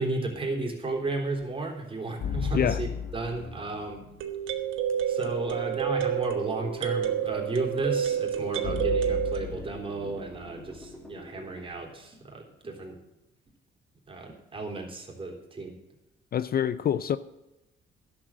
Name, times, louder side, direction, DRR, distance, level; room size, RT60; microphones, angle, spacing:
voice 1, 0.0-2.9 3.1-4.0 5.1-13.0 14.1-15.8, right 3 dB, 25° right, 1 dB, 3.6 m, -33 dB
sound 1, 1.4-1.5 4.2-9.4, right 9 dB, 90° right, 1.4 m, -29 dB
sound 2, 2.2-4.4 8.6-11.9, left 7 dB, 75° left, 2.0 m, -36 dB
sound 3, 4.9-11.7, left 1 dB, 5° left, 2.5 m, -48 dB
voice 2, 16.3-17.2, left 9 dB, 50° left, 15 dB, 0.5 m, -26 dB
11.5 x 7.6 x 7.5 m, 0.97 s
cardioid pair, 90°, 20 cm